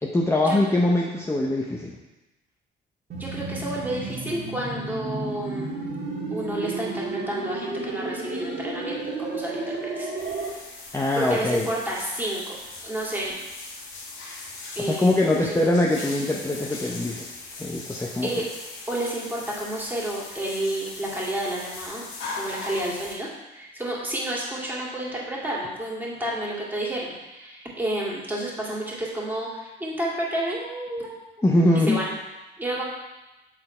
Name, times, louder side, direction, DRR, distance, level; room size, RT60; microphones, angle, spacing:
voice 1, 0.0-2.0 10.9-11.7 14.8-17.2 17.6-18.3 31.4-32.0, left 1 dB, 15° left, -3 dB, 0.8 m, -22 dB
sound 1, 3.1-10.5, right 3 dB, 60° right, 1.7 m, -32 dB
voice 2, 3.2-5.8 6.3-10.1 11.2-13.3 14.8-15.6 18.2-18.5 18.9-22.0 22.3-31.1 31.7-32.1 32.6-32.9, right 1 dB, 10° right, -5 dB, 2.2 m, -30 dB
sound 2, 10.2-23.1, left 3 dB, 90° left, 1.7 m, -39 dB
7.6 x 4.1 x 4.4 m, 1.0 s
cardioid pair, 90°, 20 cm